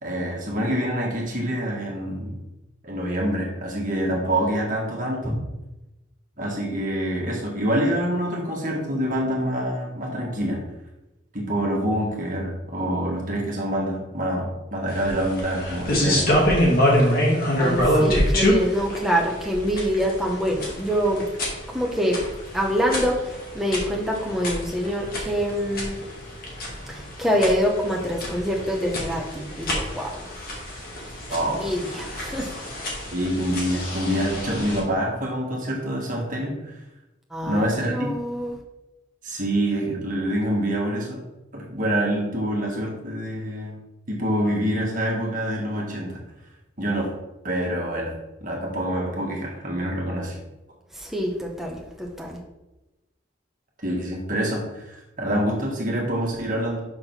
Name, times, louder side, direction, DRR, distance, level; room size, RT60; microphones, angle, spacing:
voice 1, 0.0-2.4 2.8-5.3 6.4-10.6 11.3-16.3 31.3-31.6 33.1-36.7 37.4-38.1 39.2-41.2 41.5-43.8 44.1-46.1 46.8-47.1 47.4-48.1 48.4-50.4 53.8-56.8, equal, 40° right, -2 dB, 1.7 m, -26 dB
sound 1, 14.9-34.8, equal, 45° left, 2.1 m, -26 dB
voice 2, 17.6-21.3 21.7-22.3 22.5-26.0 26.9-30.2 31.6-32.5 37.3-38.6 50.9-52.4, equal, ahead, -1 dB, 1.2 m, -25 dB
6.0 x 5.1 x 5.9 m, 1.0 s
head